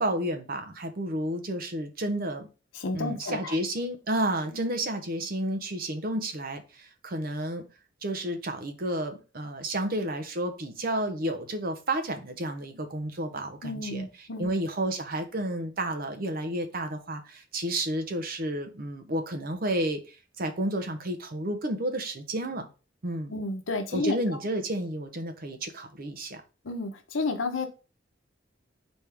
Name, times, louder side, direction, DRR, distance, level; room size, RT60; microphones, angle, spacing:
voice 1, 0.0-2.5 2.9-7.6 8.0-14.0 14.4-22.7 23.0-23.3 23.9-26.4, right 1 dB, 50° right, 0.7 m, -31 dB
voice 2, 2.7-3.6 13.6-14.5 23.3-24.4 26.6-27.7, left 3 dB, 90° left, 0.7 m, -31 dB
4.3 x 3.5 x 3.3 m
head